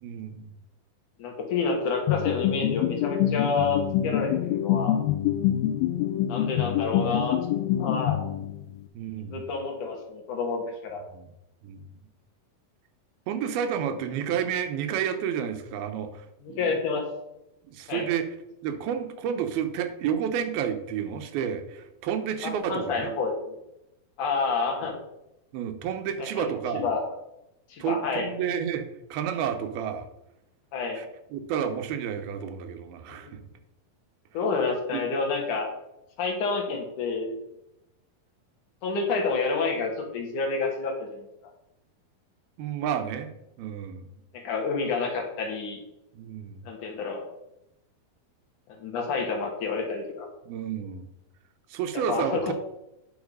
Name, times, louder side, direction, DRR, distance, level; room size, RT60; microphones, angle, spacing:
voice 1, 0.0-0.5 8.9-9.5 11.1-11.3 11.6-11.8 13.3-16.8 17.7-18.3 18.6-23.1 25.5-26.8 27.8-28.9 29.1-30.1 31.0-33.4 34.9-35.0 42.6-43.3 43.6-44.1 46.1-46.6 50.5-51.1 51.7-52.5, right 8 dB, 90° right, 8 dB, 2.9 m, -30 dB
voice 2, 1.2-5.0 6.3-7.4 7.8-8.2 9.3-11.0 16.4-17.0 17.9-18.1 22.4-23.6 24.2-24.9 26.2-27.0 27.7-28.3 30.7-31.0 34.3-35.7 36.2-37.4 38.8-41.2 44.3-45.8 46.7-47.3 48.8-50.3 52.1-52.5, left 4 dB, 65° left, 1 dB, 2.9 m, -29 dB
sound 1, 2.1-8.8, left 12 dB, 90° left, 2.5 m, -26 dB
10.0 x 5.7 x 5.4 m, 0.87 s
omnidirectional pair, 4.2 m